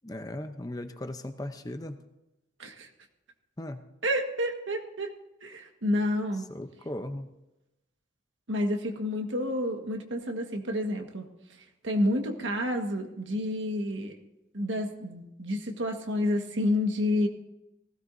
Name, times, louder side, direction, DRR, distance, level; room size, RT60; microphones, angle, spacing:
voice 1, 0.0-2.0 3.6-3.8 6.5-7.3, left 1 dB, 20° left, 8 dB, 0.7 m, -37 dB
voice 2, 4.0-5.1 5.4-6.5 8.5-11.2 11.8-14.1 14.5-17.3, left 1 dB, 85° right, 4 dB, 1.6 m, -29 dB
18.5 x 16.5 x 2.7 m, 0.93 s
head